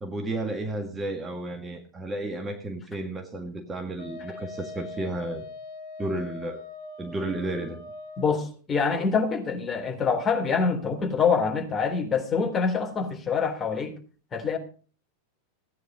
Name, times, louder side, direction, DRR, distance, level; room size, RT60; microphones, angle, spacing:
voice 1, 0.0-5.5 6.0-6.6 7.0-7.8, right 2 dB, 15° right, 1.9 m, -32 dB
Wind instrument woodwind instrument, 4.0-8.4, left 3 dB, 50° left, 3.2 m, -41 dB
voice 2, 8.2-14.0 14.3-14.6, left 5 dB, 20° left, 3.7 m, -25 dB
16.5 x 9.5 x 5.3 m
figure-of-eight pair, 90°, 0 cm